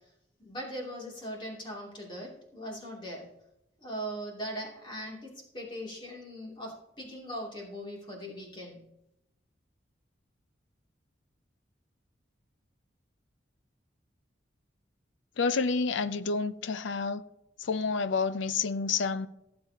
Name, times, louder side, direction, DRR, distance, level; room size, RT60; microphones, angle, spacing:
voice 1, 0.4-3.3 3.8-8.8, equal, 25° left, 2.7 m, -40 dB
voice 2, 15.4-17.2 17.6-19.3, left 4 dB, 75° left, 0.5 m, -29 dB
16.5 x 7.5 x 2.9 m
head